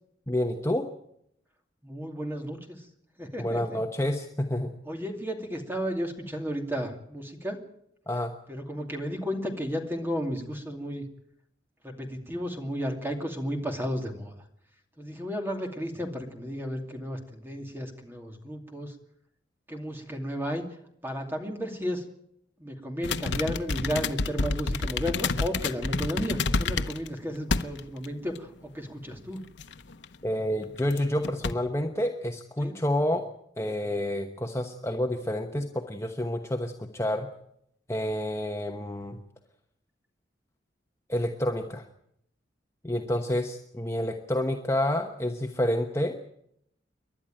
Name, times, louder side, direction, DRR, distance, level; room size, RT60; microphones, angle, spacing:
voice 1, 0.3-0.9 3.4-4.7 8.1-8.3 30.2-33.3 33.6-37.3 37.9-39.2 41.1-41.8 42.8-46.4, left 1 dB, 15° left, 3 dB, 1.1 m, -29 dB
voice 2, 1.8-2.9 3.2-3.8 4.9-7.6 8.5-11.0 11.8-14.3 15.0-18.9 19.7-20.6 21.0-22.0 22.6-29.4 32.6-32.8, equal, 10° right, 3 dB, 2.6 m, -33 dB
sound 1, 23.0-27.1 27.5-28.1 28.4-28.5 29.6-30.0 30.8-31.0 31.2-31.5, left 3 dB, 70° left, 0.8 m, -28 dB
28.5 x 11.5 x 8.9 m, 0.76 s
head